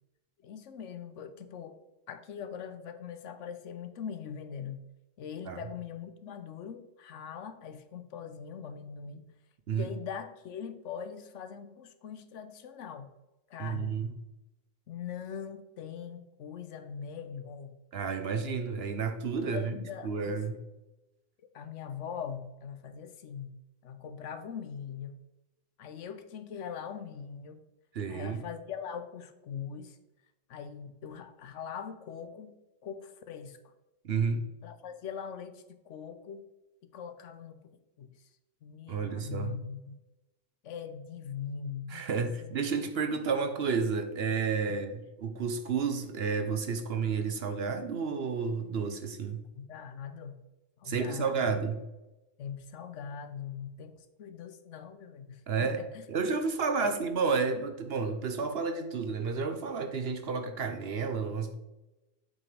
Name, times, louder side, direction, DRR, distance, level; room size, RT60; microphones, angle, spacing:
voice 1, 0.4-1.8 2.1-4.8 5.2-9.2 9.7-13.1 13.5-14.0 14.9-17.8 19.5-20.4 21.5-23.6 23.8-25.2 25.8-27.6 28.1-30.0 30.5-32.5 32.8-33.6 34.6-36.5 36.9-37.6 38.0-38.1 38.6-40.0 40.6-42.5 44.7-44.8 49.5-50.4 50.8-51.5 52.4-56.0 56.8-56.9, left 7 dB, 75° left, 10 dB, 1.0 m, -41 dB
voice 2, 13.6-14.1 17.9-19.8 20.0-20.6 27.9-28.4 34.0-34.4 38.9-39.6 41.9-49.5 50.9-51.8 55.5-55.8 56.1-61.5, right 5 dB, 60° right, 8 dB, 0.9 m, -31 dB
8.2 x 5.4 x 3.3 m, 1.0 s
omnidirectional pair, 1.3 m